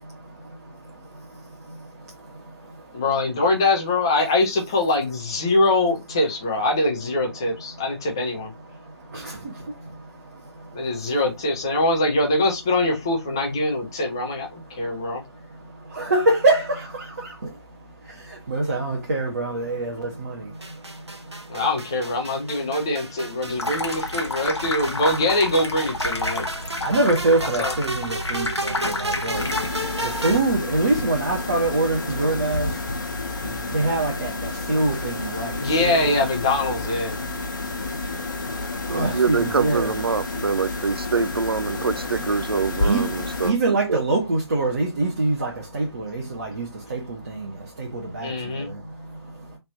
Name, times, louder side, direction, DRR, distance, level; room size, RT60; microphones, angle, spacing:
voice 1, 0.0-3.0 7.4-8.0 8.6-11.1 14.5-21.7 22.5-22.9 23.2-23.7 24.2-24.4 26.3-36.1 37.2-40.0 42.8-49.6, right 2 dB, 35° right, 0.9 m, -27 dB
voice 2, 2.9-8.5 10.7-15.2 21.5-26.5 27.6-27.7 35.6-37.2 48.2-48.7, left 2 dB, 10° left, 0.4 m, -23 dB
sound 1, 20.6-30.4, right 1 dB, 80° right, 1.0 m, -33 dB
Water tap faucet / Sink (filling or washing), 23.5-29.9, left 2 dB, 80° left, 0.8 m, -30 dB
sound 2, 29.3-43.5, left 3 dB, 45° left, 0.8 m, -30 dB
voice 3, 39.1-44.0, right 5 dB, 60° right, 0.4 m, -25 dB
3.3 x 2.5 x 4.0 m
figure-of-eight pair, 155°, 14 cm